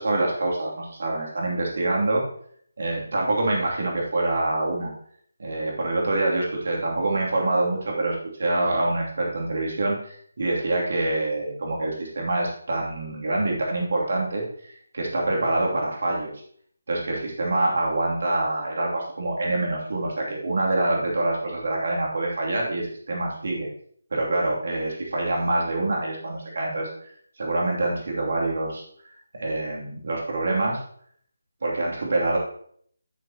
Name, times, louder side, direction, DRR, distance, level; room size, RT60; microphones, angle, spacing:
voice 1, 0.0-2.2 2.8-4.9 5.4-14.5 14.9-16.3 16.9-23.7 24.1-27.1 27.4-28.8 29.3-30.8 31.6-32.4, right 2 dB, 50° right, -2 dB, 2.9 m, -25 dB
9.5 x 9.1 x 3.0 m, 0.62 s
figure-of-eight pair, 155°, 0 cm